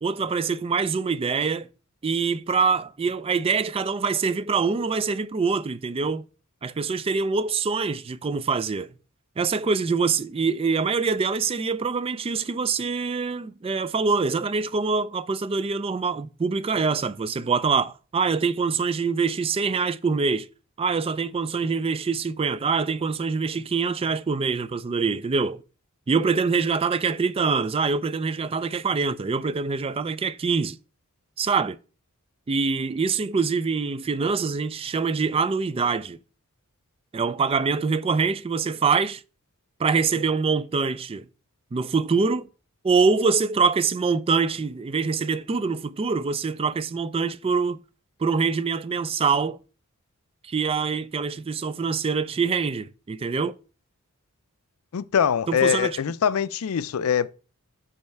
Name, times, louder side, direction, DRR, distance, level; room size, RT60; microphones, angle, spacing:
voice 1, 0.0-1.7 2.0-6.2 6.6-8.9 9.4-20.5 20.8-25.6 26.1-30.8 31.4-31.8 32.5-36.2 37.1-39.2 39.8-41.3 41.7-42.5 42.8-47.8 48.2-49.6 50.4-53.5 55.5-56.0, right 5 dB, 25° right, 0.3 m, -24 dB
voice 2, 54.9-57.3, left 7 dB, 70° left, 0.4 m, -23 dB
5.6 x 5.4 x 4.5 m
head